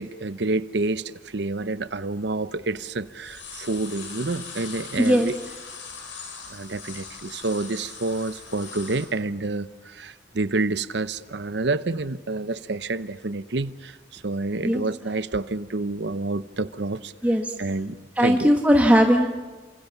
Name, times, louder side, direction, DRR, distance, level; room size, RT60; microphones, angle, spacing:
voice 1, 0.0-5.3 6.5-17.1 17.6-18.5, right 3 dB, 65° right, 14 dB, 0.8 m, -28 dB
sound 1, 2.6-2.8 3.1-9.1, left 5 dB, 80° left, 7.3 m, -40 dB
voice 2, 5.0-5.3 14.6-14.8 17.2-17.5 18.2-19.3, equal, 10° right, 2 dB, 1.4 m, -18 dB
29.0 x 27.0 x 7.1 m, 1.3 s
head